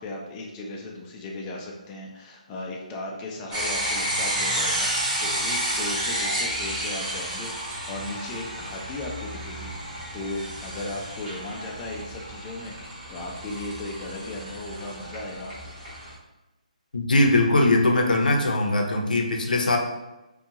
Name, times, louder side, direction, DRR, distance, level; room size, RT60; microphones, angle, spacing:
voice 1, 0.0-4.9 5.2-15.8, left 2 dB, 20° left, -1 dB, 0.3 m, -36 dB
sound 1, 3.5-16.1, right 1 dB, 15° right, 0.7 m, -31 dB
voice 2, 16.9-19.8, left 2 dB, 90° left, 1 dB, 0.5 m, -21 dB
2.6 x 2.2 x 2.8 m, 1.0 s
hypercardioid pair, 155°, 4 cm